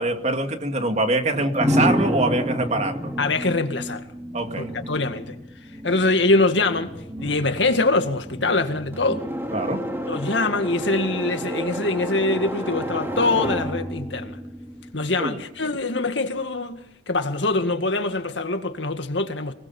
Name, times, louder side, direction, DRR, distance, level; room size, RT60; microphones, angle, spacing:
voice 1, 0.0-3.1 4.3-4.7 9.5-9.8 15.2-15.4, right 2 dB, 40° right, 2.2 m, -24 dB
sound 1, 1.5-15.4, equal, 15° right, 2.6 m, -30 dB
voice 2, 3.2-4.1 4.6-5.4 5.8-6.9 7.2-9.2 10.1-14.4 14.9-19.5, left 2 dB, 80° left, 2.1 m, -23 dB
25.5 x 20.0 x 5.6 m
head